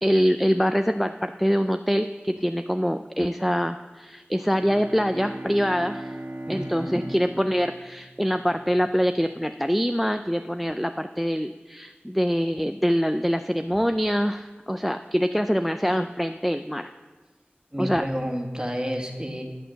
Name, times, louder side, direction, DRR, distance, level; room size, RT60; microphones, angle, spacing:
voice 1, 0.0-6.2 6.5-16.9 17.8-18.0, equal, ahead, 8 dB, 0.4 m, -24 dB
Bowed string instrument, 4.4-8.7, right 1 dB, 90° right, 1.4 m, -38 dB
voice 2, 6.5-7.0 17.7-19.4, equal, 20° right, 2 dB, 1.6 m, -30 dB
12.0 x 6.5 x 6.4 m, 1.3 s
wide cardioid pair, 40°, 4 cm